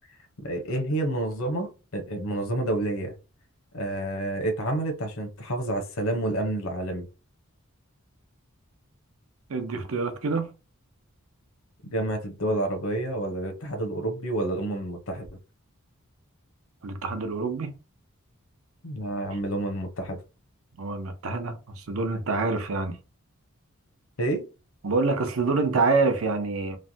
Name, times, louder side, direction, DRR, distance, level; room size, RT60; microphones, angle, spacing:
voice 1, 0.4-3.1 3.7-7.1 11.9-15.3 18.8-20.2 24.2-24.4, right 1 dB, 70° left, 0.8 m, -29 dB
voice 2, 9.5-10.5 16.8-17.8 20.8-23.0 24.8-26.8, right 3 dB, 70° right, 0.6 m, -26 dB
3.1 x 2.1 x 2.6 m
head